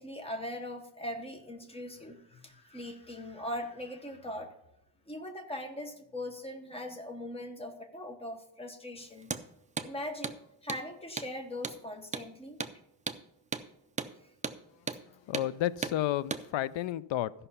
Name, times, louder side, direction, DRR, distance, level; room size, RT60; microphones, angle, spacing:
voice 1, 0.0-4.5 5.1-9.3 9.8-12.6, left 1 dB, 15° left, 5 dB, 1.0 m, -40 dB
Hammer, 9.2-9.5 9.8-9.9 10.2-10.4 10.7-10.8 11.2-11.3 11.6-11.8 12.1-12.3 12.6-12.8 13.1-13.2 13.5-13.7 14.0-14.1 14.4-14.6 14.9-15.0 15.3-15.5 15.8-16.0 16.3-16.5, right 5 dB, 20° right, 0.4 m, -35 dB
voice 2, 14.9-17.3, left 13 dB, 85° left, 19 dB, 0.5 m, -32 dB
13.5 x 5.6 x 5.5 m, 0.81 s
wide cardioid pair, 160°, 43 cm